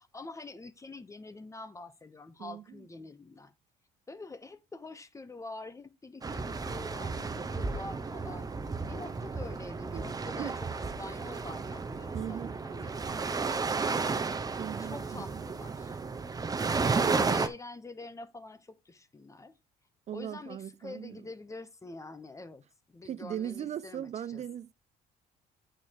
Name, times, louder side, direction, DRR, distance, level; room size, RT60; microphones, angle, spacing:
voice 1, 0.0-3.5 4.1-8.5 8.8-14.1 14.8-16.0 16.7-19.5 20.1-24.4, left 3 dB, 20° left, 1.1 m, -46 dB
sound 1, 6.2-17.5, right 4 dB, 20° right, 0.9 m, -33 dB
voice 2, 12.1-12.6 14.6-15.4 16.9-17.3 20.1-21.2 23.0-24.7, right 10 dB, 40° right, 0.4 m, -38 dB
9.1 x 4.6 x 4.6 m
cardioid pair, 110°, 17 cm